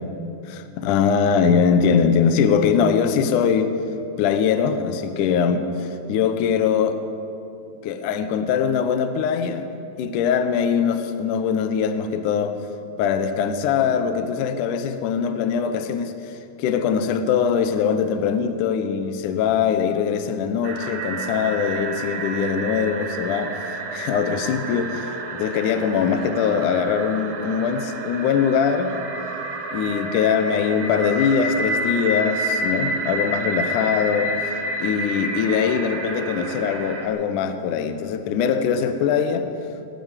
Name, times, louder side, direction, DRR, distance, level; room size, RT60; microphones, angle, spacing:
voice 1, 0.5-3.7 4.2-7.0 7.8-9.7 10.0-12.6 13.0-28.9 29.7-34.3 34.8-39.5, left 7 dB, 75° left, 9 dB, 1.9 m, -22 dB
sound 1, 20.6-37.1, right 1 dB, 80° right, 1.2 m, -29 dB
19.0 x 9.2 x 8.1 m, 2.7 s
omnidirectional pair, 4.7 m